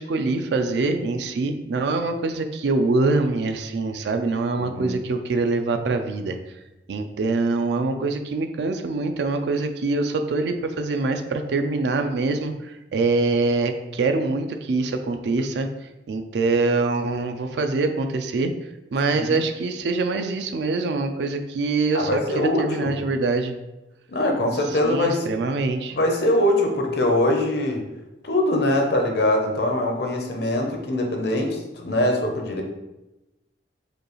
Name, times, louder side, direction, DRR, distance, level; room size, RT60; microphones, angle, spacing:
voice 1, 0.0-6.4 6.9-12.5 12.9-15.7 16.1-18.5 18.9-23.5 24.8-26.0, right 3 dB, 65° right, 6 dB, 0.4 m, -24 dB
voice 2, 4.6-5.0 19.1-19.3 21.9-22.9 24.1-25.3 25.9-27.8 28.2-32.6, left 1 dB, 60° left, 2 dB, 0.6 m, -23 dB
5.0 x 2.3 x 3.0 m, 0.99 s
head